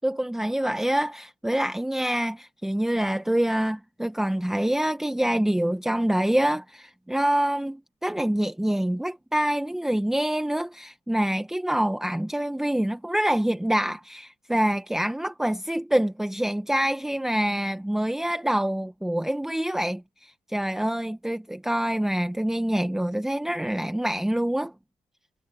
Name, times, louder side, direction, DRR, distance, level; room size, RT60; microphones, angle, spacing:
voice 1, 0.0-24.7, right 1 dB, 5° right, 0.9 m, -26 dB
cardioid pair, 145°, 12 cm